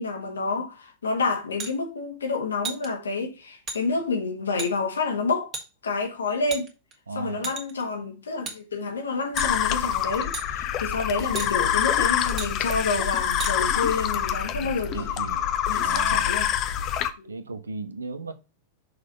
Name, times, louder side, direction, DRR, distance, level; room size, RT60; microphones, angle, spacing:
voice 1, 0.0-5.5 5.8-6.7 7.1-15.1 15.7-16.5 17.2-17.3, left 4 dB, 70° left, 1.6 m, -29 dB
sound 1, 1.6-1.7 2.6-2.9 3.7-3.8 4.6-4.7 5.5-5.7 6.5-6.9 7.4-7.8 8.5-8.6 9.4-9.6 10.3-10.5 11.4-11.5 12.4-12.5 13.4-13.5, right 5 dB, 30° right, 2.1 m, -33 dB
voice 2, 7.1-7.5 14.5-14.7 14.9-15.5 15.8-16.4 17.3-18.3, right 4 dB, 75° right, 0.9 m, -36 dB
sound 2, 9.3-17.1, left 10 dB, 35° left, 0.8 m, -26 dB
6.5 x 4.0 x 5.3 m
figure-of-eight pair, 90°, 0 cm